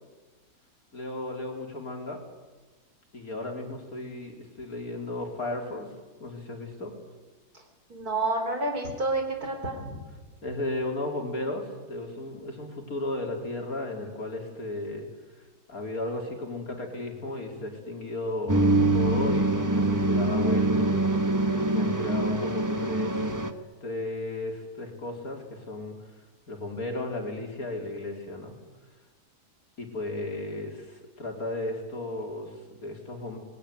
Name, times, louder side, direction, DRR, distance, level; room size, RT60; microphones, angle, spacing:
voice 1, 0.9-2.2 3.1-5.9 6.2-6.9 10.4-15.0 15.7-20.9 21.6-23.4 23.8-26.0 26.5-28.5 29.8-33.4, left 2 dB, 65° left, 2 dB, 4.4 m, -34 dB
voice 2, 7.9-10.0, right 2 dB, 70° right, 5 dB, 4.6 m, -29 dB
sound 1, 18.5-23.5, right 2 dB, 15° right, 1.2 m, -24 dB
25.0 x 21.0 x 9.8 m, 1.2 s
omnidirectional pair, 1.7 m